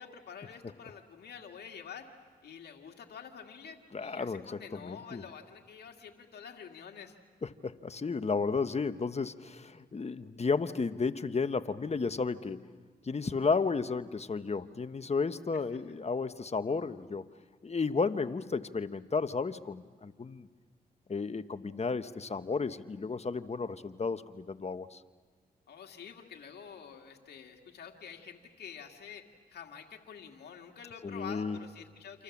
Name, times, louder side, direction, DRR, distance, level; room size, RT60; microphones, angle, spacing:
voice 1, 0.0-2.1 2.4-7.2 15.5-15.6 25.7-32.2, left 7 dB, 75° left, 3 dB, 2.1 m, -48 dB
voice 2, 3.9-4.4 4.7-5.2 7.4-12.7 13.0-17.3 17.6-20.5 21.1-25.0 31.0-31.6, left 4 dB, 40° left, 11 dB, 1.2 m, -33 dB
28.5 x 26.5 x 7.3 m, 1.5 s
cardioid pair, 50°, 17 cm